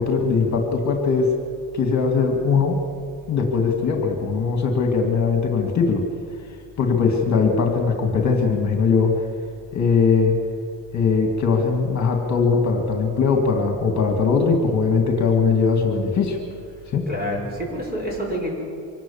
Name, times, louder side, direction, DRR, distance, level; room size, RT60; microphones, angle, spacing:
voice 1, 0.0-1.3 1.7-2.8 3.3-6.0 6.8-9.2 9.7-10.4 10.9-16.4 16.9-17.1, left 5 dB, 40° left, 3 dB, 2.2 m, -20 dB
voice 2, 17.1-18.5, equal, 20° right, -1 dB, 5.9 m, -27 dB
24.5 x 18.0 x 7.2 m, 2.3 s
cardioid pair, 150°, 43 cm